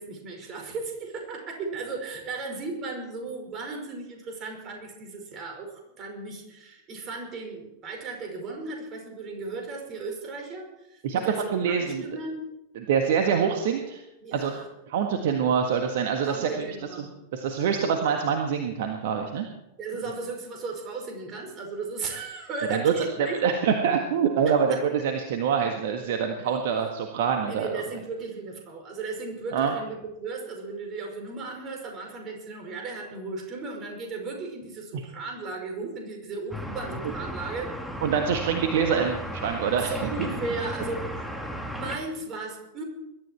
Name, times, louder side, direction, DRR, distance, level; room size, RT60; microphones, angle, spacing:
voice 1, 0.0-12.4 14.2-14.7 16.3-17.1 19.8-23.4 24.5-24.8 27.4-37.8 39.8-41.3 41.7-42.8, right 3 dB, 30° right, 3 dB, 5.4 m, -36 dB
voice 2, 11.5-12.0 12.8-14.0 14.3-14.5 14.9-17.1 17.3-19.5 22.7-22.9 23.2-27.8 29.5-29.7 34.9-35.0 38.0-40.3, right 7 dB, 55° right, 4 dB, 1.6 m, -25 dB
sound 1, 36.5-42.0, equal, ahead, 2.3 m, -35 dB
21.5 x 12.5 x 4.6 m, 0.88 s
figure-of-eight pair, 90°, 0 cm